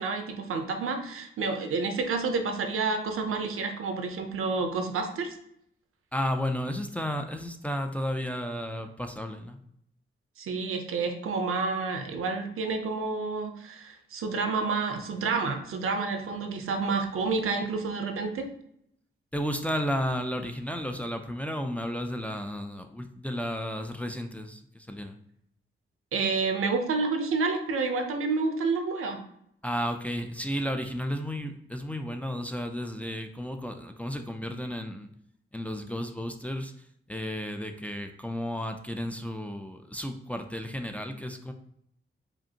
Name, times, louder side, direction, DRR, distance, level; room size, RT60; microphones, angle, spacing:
voice 1, 0.0-5.3 10.4-18.5 26.1-29.2, right 4 dB, 90° right, 5 dB, 0.6 m, -29 dB
voice 2, 6.1-9.6 19.3-25.2 29.6-35.1 35.5-36.7 37.1-41.5, equal, 5° left, 5 dB, 0.3 m, -33 dB
5.1 x 2.5 x 2.8 m, 0.72 s
wide cardioid pair, 100°, 21 cm